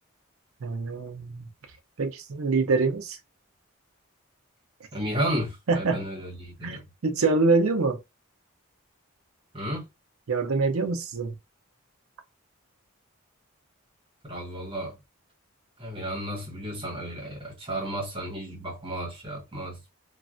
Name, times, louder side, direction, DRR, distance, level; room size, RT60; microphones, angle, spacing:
voice 1, 0.6-1.5 2.0-3.2 5.7-6.0 6.6-8.0 10.3-11.4, right 3 dB, 85° right, 0.6 m, -25 dB
voice 2, 4.9-6.8 9.5-9.9 14.2-15.0 15.8-19.8, right 1 dB, 25° right, 1.2 m, -33 dB
3.1 x 2.3 x 2.5 m
head